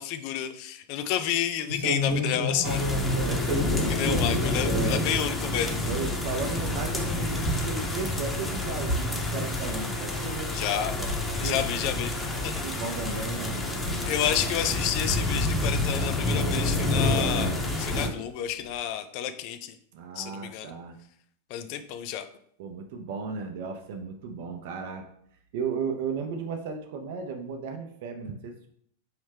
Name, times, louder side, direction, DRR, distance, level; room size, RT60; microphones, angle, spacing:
voice 1, 0.0-2.8 3.9-5.8 10.5-10.9 11.4-12.1 12.4-12.5 14.1-19.8 20.2-20.7 21.5-22.3, left 10 dB, 45° left, 10 dB, 0.4 m, -30 dB
sound 1, 1.7-5.0 5.5-9.6 10.0-10.3 10.9-11.2 11.5-11.8 12.4-12.5 12.9-13.0 14.1-14.2 15.0-15.8 16.9-17.1 17.5-17.6 17.9-18.0, equal, 65° right, 1.0 m, -32 dB
sound 2, 2.6-18.1, left 2 dB, 10° left, 0.8 m, -28 dB
voice 2, 3.2-4.2 4.5-5.0 5.8-11.6 12.6-13.6 19.9-21.0 22.6-25.1 25.5-28.7, right 5 dB, 50° right, 4 dB, 0.5 m, -35 dB
4.7 x 3.0 x 3.4 m, 0.67 s
figure-of-eight pair, 90°, 0 cm